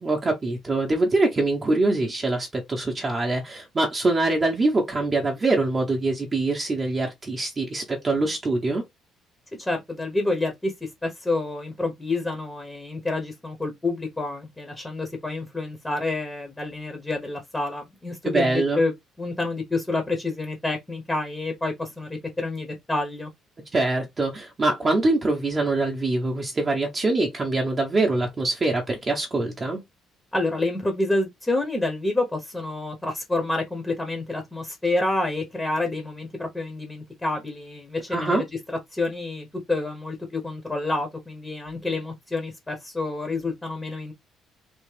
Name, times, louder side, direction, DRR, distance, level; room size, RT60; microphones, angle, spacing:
voice 1, 0.0-8.8 18.3-18.8 23.7-29.8 38.1-38.4, right 2 dB, 25° right, 0.8 m, -24 dB
voice 2, 9.6-23.3 30.3-38.6 38.9-44.1, left 2 dB, 10° left, 0.8 m, -28 dB
3.5 x 2.4 x 3.3 m
cardioid pair, 140°, 0 cm